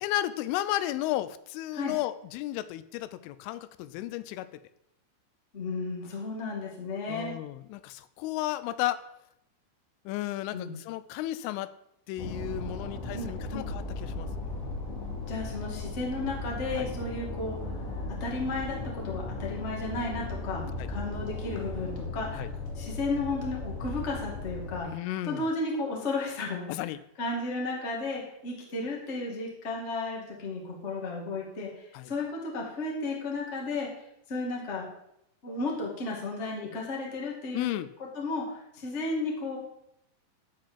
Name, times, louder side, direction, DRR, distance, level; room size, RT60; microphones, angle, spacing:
voice 1, 0.0-4.5 7.1-9.0 10.1-11.7 12.1-14.7 16.8-16.9 20.8-20.9 22.3-22.5 24.8-25.4 26.7-27.0 31.9-32.1 37.5-37.9, left 14 dB, 90° left, 14 dB, 3.1 m, -33 dB
voice 2, 5.5-7.3 10.5-10.7 13.1-13.6 15.2-17.6 18.2-22.5 22.7-26.7 27.2-33.9 34.3-34.9 35.4-37.7 38.1-39.6, left 3 dB, 30° left, -2 dB, 1.3 m, -33 dB
sound 1, 12.2-24.8, left 2 dB, 60° left, 3.5 m, -36 dB
12.0 x 5.0 x 7.6 m, 0.77 s
omnidirectional pair, 5.5 m